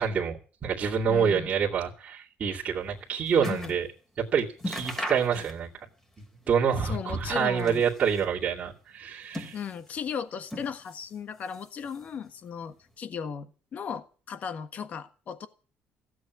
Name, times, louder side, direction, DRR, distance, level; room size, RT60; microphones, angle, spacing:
voice 1, 0.0-3.9 4.2-5.7 6.5-9.6, right 7 dB, 35° right, -6 dB, 2.6 m, -27 dB
voice 2, 1.1-1.5 3.4-3.7 6.8-7.8 9.5-15.5, left 7 dB, 45° left, 10 dB, 1.5 m, -36 dB
sound 1, 2.7-3.9 4.2-4.3 4.6-5.9 6.2-7.1 7.5-8.3 9.0-10.0 10.5-11.2 11.5-12.2 12.9-13.0, left 1 dB, 10° left, 2.8 m, -39 dB
15.5 x 8.0 x 9.4 m, 0.39 s
cardioid pair, 135°, 4 cm